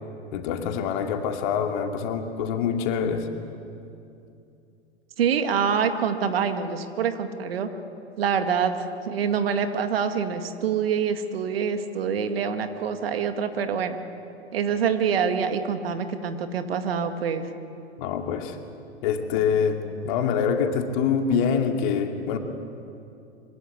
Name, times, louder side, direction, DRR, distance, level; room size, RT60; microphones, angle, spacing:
voice 1, 0.3-3.3 18.0-18.6 19.0-22.4, left 6 dB, 45° left, 4 dB, 2.4 m, -25 dB
voice 2, 5.2-7.7 8.2-8.8 9.1-14.0 14.5-17.5, right 7 dB, 60° right, 8 dB, 2.0 m, -25 dB
25.0 x 16.0 x 10.0 m, 2.7 s
figure-of-eight pair, 95°, 34 cm